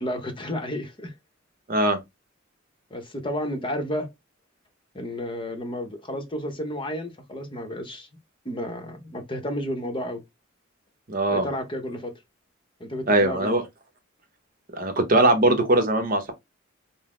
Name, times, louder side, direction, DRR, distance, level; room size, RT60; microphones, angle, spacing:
voice 1, 0.0-1.1 2.9-4.1 4.9-8.1 8.4-10.2 11.3-12.1 12.8-13.5, left 1 dB, 25° left, 0.8 m, -31 dB
voice 2, 11.1-11.5 13.1-13.6 14.7-16.3, right 2 dB, 45° right, 0.8 m, -21 dB
3.9 x 2.0 x 3.6 m
head